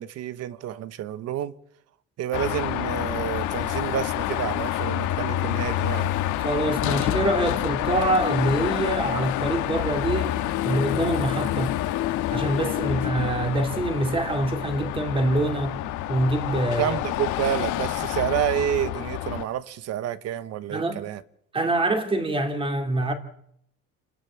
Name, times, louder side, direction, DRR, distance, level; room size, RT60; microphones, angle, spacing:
voice 1, 0.0-1.5 2.2-6.2 14.1-14.2 16.8-21.2, right 11 dB, 55° right, 1.2 m, -29 dB
Car passing by / Traffic noise roadway noise / Engine, 2.3-19.4, left 13 dB, 80° left, 1.6 m, -28 dB
voice 2, 6.4-10.4 10.6-11.8 12.3-15.8 16.1-17.0 20.7-21.0 21.5-23.1, right 2 dB, 15° right, 2.7 m, -25 dB
28.5 x 13.0 x 8.7 m
cardioid pair, 160°, 30 cm